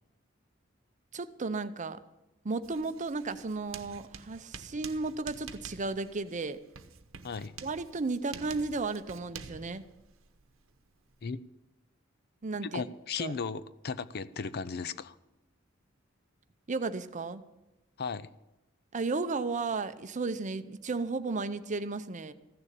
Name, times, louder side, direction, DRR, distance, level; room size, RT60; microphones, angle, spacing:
voice 1, 1.1-2.0 2.4-6.6 7.6-9.8 12.4-12.8 13.2-13.3 16.7-17.4 18.9-22.3, right 3 dB, 40° right, 12 dB, 0.7 m, -34 dB
Writing, 2.6-11.3, right 6 dB, 75° right, 1.0 m, -49 dB
voice 2, 7.2-7.5 11.2-11.4 12.6-15.2 18.0-18.3, left 5 dB, 50° left, 15 dB, 0.5 m, -36 dB
15.0 x 7.0 x 9.9 m, 0.98 s
head